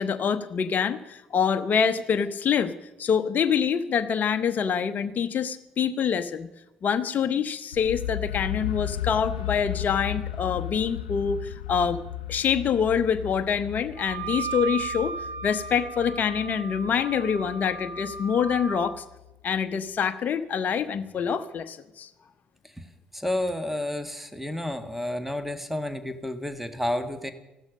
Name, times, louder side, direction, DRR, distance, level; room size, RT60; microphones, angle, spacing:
voice 1, 0.0-2.7 3.0-6.5 6.8-12.0 12.3-15.1 15.4-19.0 19.4-22.1, left 7 dB, 45° left, 10 dB, 0.9 m, -26 dB
sound 1, 7.7-19.6, left 12 dB, 80° left, 0.4 m, -35 dB
Wind instrument woodwind instrument, 14.0-18.9, right 5 dB, 50° right, 2.1 m, -35 dB
voice 2, 23.1-27.3, left 1 dB, 5° right, 10 dB, 1.7 m, -30 dB
15.5 x 12.5 x 6.5 m, 0.98 s
figure-of-eight pair, 50°, 4 cm